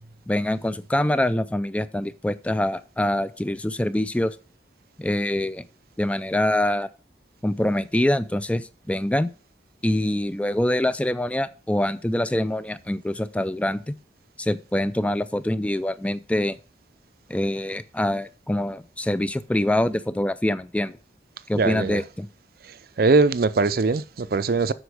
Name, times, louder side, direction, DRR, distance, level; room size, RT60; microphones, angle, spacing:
voice 1, 0.3-4.4 5.0-5.6 6.0-6.9 7.4-9.3 9.8-13.9 14.4-16.6 17.3-21.0 21.5-22.3, left 1 dB, 5° left, 0.4 m, -25 dB
voice 2, 21.5-22.0 22.6-24.7, right 3 dB, 55° right, 0.5 m, -21 dB
8.1 x 6.1 x 6.3 m
head